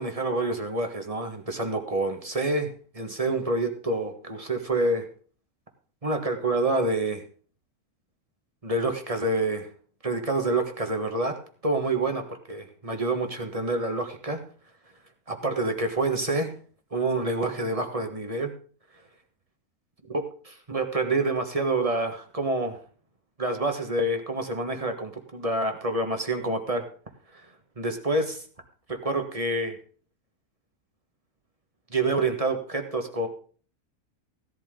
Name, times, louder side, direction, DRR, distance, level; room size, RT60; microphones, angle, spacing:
voice 1, 0.0-5.0 6.0-7.2 8.6-9.7 10.0-11.3 11.6-14.4 15.3-16.5 16.9-18.5 20.1-22.8 23.4-26.8 27.3-27.4 27.8-28.4 28.9-29.7 31.9-33.3, right 2 dB, 25° right, 5 dB, 1.6 m, -27 dB
16.0 x 11.5 x 3.8 m, 0.43 s
omnidirectional pair, 1.6 m